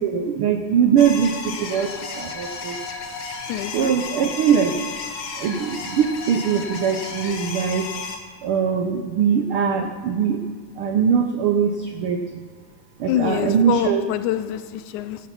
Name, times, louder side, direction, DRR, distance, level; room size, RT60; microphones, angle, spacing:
voice 1, 0.0-1.3 1.6-1.9 2.2-2.8 3.7-4.8 5.4-7.9 8.4-10.4 10.8-12.2 13.0-14.0, right 7 dB, 85° right, 6 dB, 1.2 m, -21 dB
sound 1, 1.0-8.2, left 4 dB, 50° left, 1.8 m, -33 dB
voice 2, 3.5-3.9 13.1-15.2, left 11 dB, 85° left, 12 dB, 2.1 m, -25 dB
16.5 x 10.5 x 5.7 m, 1.5 s
omnidirectional pair, 3.4 m